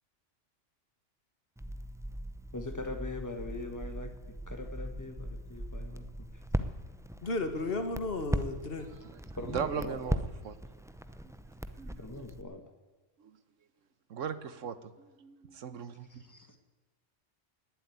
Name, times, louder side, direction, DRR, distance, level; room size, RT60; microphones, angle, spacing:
Crackle, 1.6-12.4, equal, 5° right, 0.4 m, -39 dB
voice 1, 2.5-6.4 9.4-10.0 12.0-12.6 16.1-16.6, left 2 dB, 15° left, 6 dB, 1.7 m, -42 dB
voice 2, 7.2-8.9, left 2 dB, 50° left, 7 dB, 1.8 m, -33 dB
voice 3, 9.4-10.6 11.2-11.3 11.8-12.0 13.2-13.4 14.1-16.2, right 7 dB, 85° right, 13 dB, 1.4 m, -38 dB
18.5 x 8.0 x 9.5 m, 1.2 s
omnidirectional pair, 1.3 m